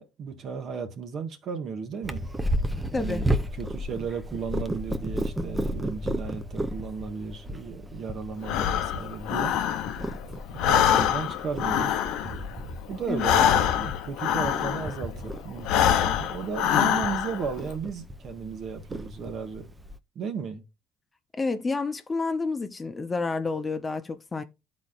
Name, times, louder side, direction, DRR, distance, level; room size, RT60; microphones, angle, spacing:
voice 1, 0.0-2.2 2.9-3.3 3.5-9.6 10.5-12.0 12.9-19.7 20.1-20.6, right 6 dB, 55° right, 1.4 m, -35 dB
Purr, 2.0-20.0, right 1 dB, 15° right, 0.8 m, -34 dB
voice 2, 2.9-3.3 13.1-13.3 21.3-24.4, left 3 dB, 25° left, 0.8 m, -29 dB
Breathing, 8.4-10.2 10.5-15.1 15.6-17.5, left 10 dB, 75° left, 0.6 m, -25 dB
12.0 x 4.2 x 2.5 m
supercardioid pair, 70°, 0 cm